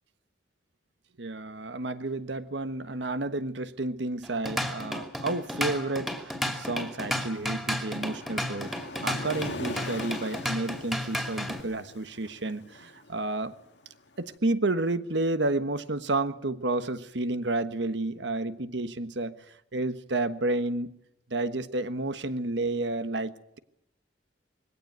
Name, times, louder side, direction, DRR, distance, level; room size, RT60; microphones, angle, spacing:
voice 1, 1.2-8.7 9.0-13.5 14.2-19.4 19.7-20.9 21.3-23.6, right 2 dB, 75° right, 1.3 m, -31 dB
Drum kit / Drum, 4.2-11.6, equal, ahead, 2.6 m, -33 dB
Waves surf, 7.2-14.2, left 2 dB, 75° left, 1.8 m, -43 dB
21.0 x 17.0 x 9.3 m
head